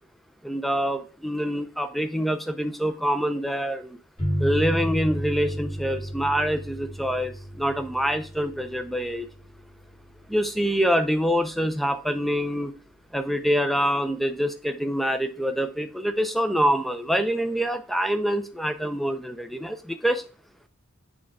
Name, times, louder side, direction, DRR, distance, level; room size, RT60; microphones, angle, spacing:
voice 1, 0.4-4.0 4.4-9.3 10.3-12.7 13.1-20.2, equal, ahead, 0.4 m, -25 dB
sound 1, 4.2-13.5, equal, 35° left, 3.7 m, -34 dB
7.4 x 3.4 x 4.7 m
head